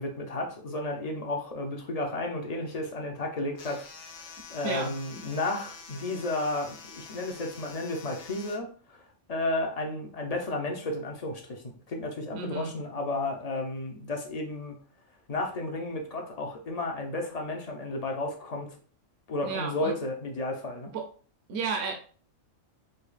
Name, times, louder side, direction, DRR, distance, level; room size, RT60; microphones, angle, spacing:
voice 1, 0.0-3.9 4.2-9.0 9.3-14.7 15.3-18.8 19.3-20.9, left 2 dB, 45° left, 2 dB, 0.5 m, -33 dB
sound 1, 3.6-8.6, left 5 dB, 85° left, 1.1 m, -47 dB
voice 2, 4.6-5.0 12.3-12.7 19.4-19.9 20.9-21.0 21.5-21.9, right 5 dB, 60° right, 3 dB, 0.9 m, -32 dB
5.0 x 2.3 x 2.4 m, 0.41 s
omnidirectional pair, 1.4 m